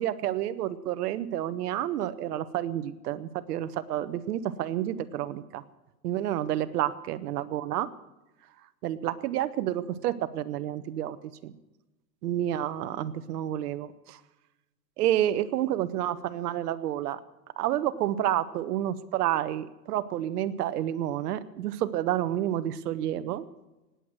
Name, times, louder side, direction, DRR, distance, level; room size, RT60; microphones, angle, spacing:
voice 1, 0.0-5.6 6.0-7.9 8.8-11.2 11.4-11.5 12.2-14.2 15.0-17.2 17.6-23.5, right 12 dB, 65° right, 15 dB, 1.1 m, -29 dB
18.5 x 8.2 x 7.7 m, 1.1 s
hypercardioid pair, 135°, 49 cm